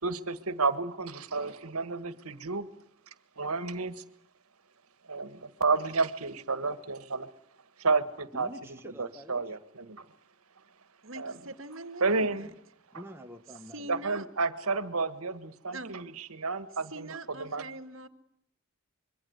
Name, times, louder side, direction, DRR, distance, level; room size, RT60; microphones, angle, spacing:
voice 1, 0.0-2.7 3.4-4.0 5.1-7.3 7.8-8.5 9.0-9.6 9.9-10.0 11.2-11.3 12.0-12.5 13.9-17.6, right 4 dB, 85° right, 1.7 m, -31 dB
voice 2, 8.3-9.4 12.9-14.0, right 1 dB, 10° right, 1.3 m, -46 dB
voice 3, 11.0-12.5 13.7-14.3 15.7-16.0 16.9-18.1, right 2 dB, 60° right, 1.9 m, -43 dB
25.5 x 23.5 x 8.1 m
head